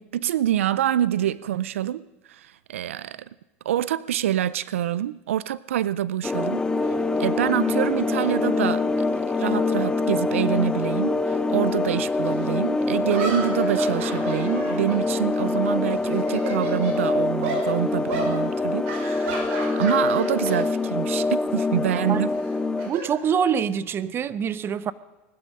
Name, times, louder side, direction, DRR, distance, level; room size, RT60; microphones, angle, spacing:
voice 1, 0.0-2.0 2.3-3.2 3.6-6.9 7.2-8.8 9.3-22.3, right 11 dB, 90° right, 0.4 m, -26 dB
sound 1, 6.2-22.9, left 3 dB, 10° left, 0.7 m, -25 dB
sound 2, 12.2-12.3 13.0-15.7 16.0-17.0 17.4-17.7 18.1-18.3 18.8-20.6 20.9-21.1 22.3-23.8, right 4 dB, 70° right, 5.0 m, -33 dB
voice 2, 22.9-24.9, right 7 dB, 35° right, 0.8 m, -25 dB
20.0 x 12.5 x 5.4 m
hypercardioid pair, 105°, 7 cm